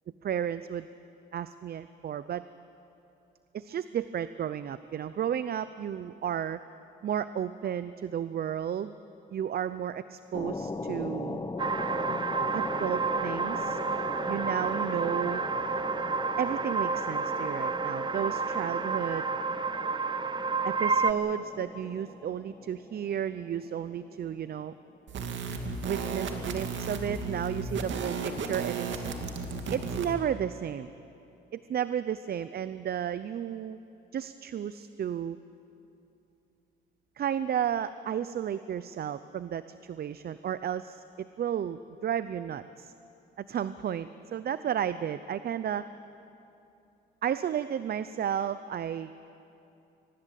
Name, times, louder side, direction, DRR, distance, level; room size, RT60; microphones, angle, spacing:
voice 1, 0.2-0.9 1.3-2.4 3.5-6.6 7.0-8.9 9.3-11.4 12.5-13.8 14.3-15.4 16.4-19.3 20.6-24.7 25.8-29.1 29.7-30.9 31.5-33.8 34.1-35.4 37.2-42.9 43.4-45.8 47.2-49.3, right 9 dB, 50° right, 14 dB, 0.6 m, -33 dB
sound 1, 10.3-25.4, left 3 dB, 20° left, 1.3 m, -39 dB
sound 2, 11.6-21.1, right 4 dB, 25° right, 0.8 m, -30 dB
sound 3, 25.1-30.1, right 4 dB, 70° right, 2.4 m, -34 dB
23.5 x 19.5 x 8.4 m, 2.8 s
cardioid pair, 90°, 20 cm